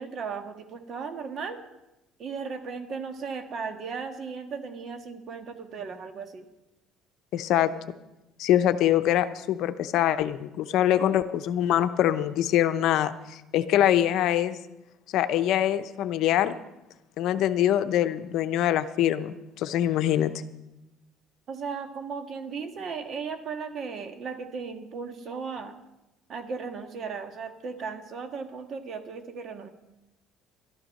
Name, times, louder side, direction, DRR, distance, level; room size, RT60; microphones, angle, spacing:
voice 1, 0.0-1.6 2.2-6.5 21.5-25.7 26.3-29.7, right 5 dB, 50° right, 6 dB, 1.6 m, -36 dB
voice 2, 7.3-8.0 8.4-14.6 15.1-16.5 17.2-20.3, left 11 dB, 70° left, 11 dB, 0.7 m, -24 dB
12.5 x 11.0 x 6.4 m, 0.96 s
cardioid pair, 105°, 0 cm